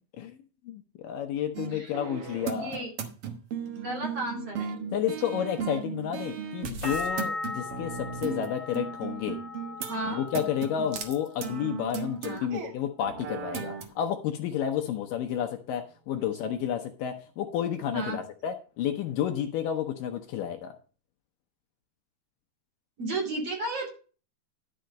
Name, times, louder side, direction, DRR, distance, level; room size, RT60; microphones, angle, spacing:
voice 1, 0.7-2.8 4.9-9.4 10.1-20.7, left 9 dB, 75° left, 5 dB, 2.2 m, -31 dB
sound 1, 1.5-8.5 8.7-12.7 13.0-13.9, right 6 dB, 65° right, 1.5 m, -36 dB
voice 2, 2.5-2.9 3.8-4.7 9.9-10.2 12.2-12.5 17.9-18.2 23.0-23.9, right 2 dB, 45° right, -1 dB, 3.2 m, -33 dB
sound 2, 6.8-12.5 12.8-13.5, left 2 dB, 10° left, 2.4 m, -39 dB
11.5 x 5.6 x 5.1 m, 0.38 s
omnidirectional pair, 4.3 m